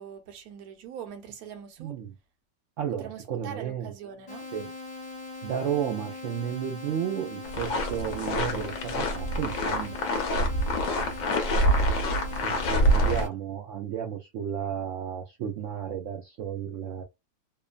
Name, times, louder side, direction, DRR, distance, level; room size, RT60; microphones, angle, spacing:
voice 1, 0.0-2.0 3.0-4.5 12.4-13.1, right 8 dB, 65° right, 1.1 m, -43 dB
voice 2, 1.8-2.1 2.8-3.9 4.5-4.7 5.4-10.0 12.4-17.0, right 9 dB, 85° right, 0.6 m, -33 dB
sound 1, 4.3-13.3, left 3 dB, 40° left, 0.6 m, -41 dB
sound 2, 7.4-13.2, equal, 60° left, 0.9 m, -26 dB
2.9 x 2.0 x 2.4 m
omnidirectional pair, 1.9 m